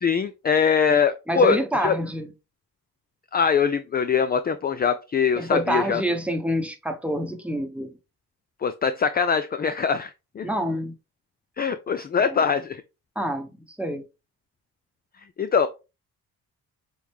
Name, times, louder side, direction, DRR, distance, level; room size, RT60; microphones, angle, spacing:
voice 1, 0.0-1.6 1.8-1.9 3.3-6.0 8.6-10.1 10.4-10.5 11.6-12.8 15.4-15.7, left 6 dB, 25° left, 0.4 m, -22 dB
voice 2, 1.3-2.3 5.3-7.9 10.4-10.9 12.2-12.4 13.2-13.5 13.8-14.0, equal, 5° right, 1.0 m, -27 dB
6.2 x 2.1 x 3.5 m
cardioid pair, 70°, 40 cm